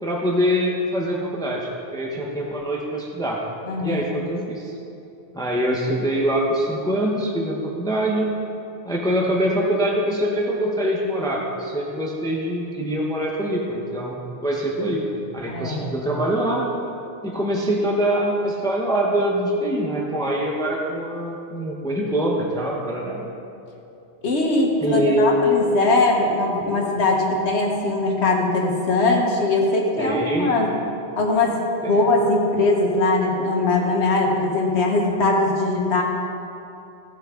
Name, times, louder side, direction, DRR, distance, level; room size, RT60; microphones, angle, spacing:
voice 1, 0.0-3.4 3.8-4.7 5.3-8.3 8.8-16.6 17.2-23.2 24.8-25.4 30.0-30.6 31.8-31.9, right 1 dB, 5° left, -2 dB, 0.9 m, -24 dB
voice 2, 3.7-4.3 15.5-15.9 24.2-30.7 31.2-31.6 31.9-36.0, left 2 dB, 75° left, 0 dB, 1.6 m, -21 dB
16.0 x 6.3 x 3.7 m, 2.8 s
omnidirectional pair, 1.1 m